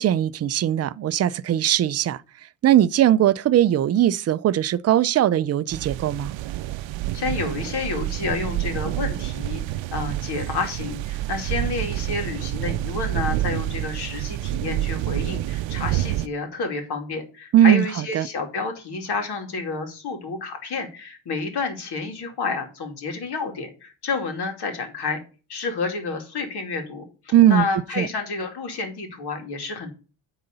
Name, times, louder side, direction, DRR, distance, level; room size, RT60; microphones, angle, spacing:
voice 1, 0.0-2.2 2.6-6.3 17.5-18.3 27.3-27.7 28.0-28.1, right 11 dB, 35° right, 0.4 m, -19 dB
sound 1, 5.7-16.3, right 15 dB, 75° right, 0.6 m, -28 dB
voice 2, 7.1-9.6 9.9-25.2 25.5-29.9, left 4 dB, 55° left, 2.6 m, -29 dB
9.4 x 4.0 x 6.6 m
cardioid pair, 125°, 46 cm